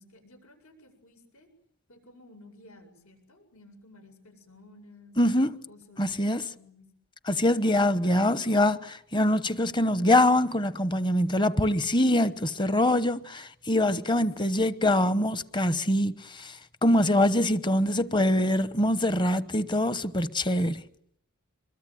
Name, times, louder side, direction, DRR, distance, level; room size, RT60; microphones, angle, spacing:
voice 1, 0.0-1.5 1.9-5.2 5.7-6.9 8.0-8.6, left 1 dB, 75° left, 7.5 m, -54 dB
voice 2, 5.2-5.5 6.0-6.4 7.3-8.8 9.1-16.6 16.8-20.8, left 1 dB, 20° left, 1.0 m, -24 dB
26.5 x 23.0 x 9.2 m
head